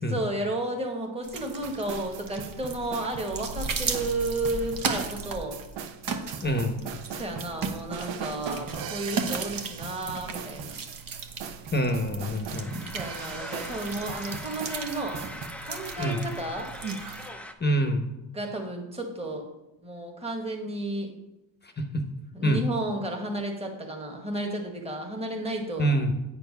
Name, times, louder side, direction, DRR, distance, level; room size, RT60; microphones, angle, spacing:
voice 1, 0.1-5.6 7.1-10.8 12.7-15.2 15.6-16.7 18.3-19.5 19.8-21.1 22.3-25.9, right 1 dB, 15° right, 2 dB, 1.4 m, -32 dB
sound 1, 1.2-17.3, right 4 dB, 45° right, 1.0 m, -36 dB
sound 2, 1.6-15.5, right 7 dB, 70° right, 0.8 m, -40 dB
voice 2, 6.4-6.8 11.7-12.7 16.0-16.2 17.6-18.1 21.9-22.0 22.4-22.6 25.8-26.1, equal, 20° left, 5 dB, 0.9 m, -25 dB
sound 3, 12.5-17.5, left 1 dB, 5° left, 0.5 m, -41 dB
8.6 x 4.6 x 5.4 m, 0.92 s
cardioid pair, 105°, 47 cm